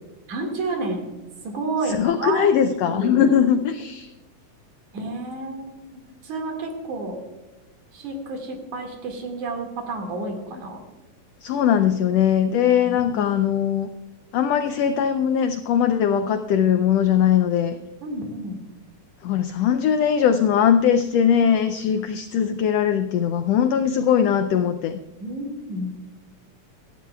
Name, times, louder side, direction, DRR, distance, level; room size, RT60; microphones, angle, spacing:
voice 1, 0.3-1.0 1.4-2.5 2.9-3.3 4.9-7.2 7.9-10.8 12.8-13.3 18.0-18.6 25.2-25.9, right 2 dB, 70° right, 2 dB, 3.3 m, -30 dB
voice 2, 1.8-4.1 11.4-13.9 14.3-17.8 19.2-25.0, left 8 dB, 90° left, 9 dB, 1.4 m, -20 dB
17.5 x 13.0 x 2.3 m, 1.1 s
omnidirectional pair, 3.6 m